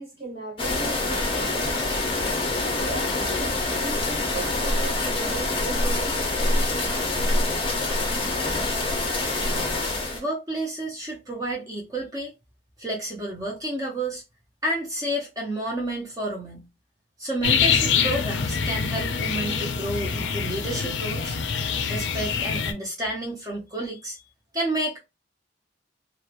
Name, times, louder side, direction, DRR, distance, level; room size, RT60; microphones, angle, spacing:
voice 1, 0.0-1.9 2.6-6.2, right 3 dB, 55° right, 1.2 m, -37 dB
sound 1, 0.6-10.2, left 2 dB, 30° left, 0.5 m, -25 dB
voice 2, 10.1-12.3 12.8-14.2 14.6-16.7 17.2-21.4 21.9-24.2 24.5-25.0, right 1 dB, 20° right, 0.5 m, -30 dB
sound 2, 17.4-22.7, left 6 dB, 90° left, 0.4 m, -25 dB
2.9 x 2.0 x 2.3 m
head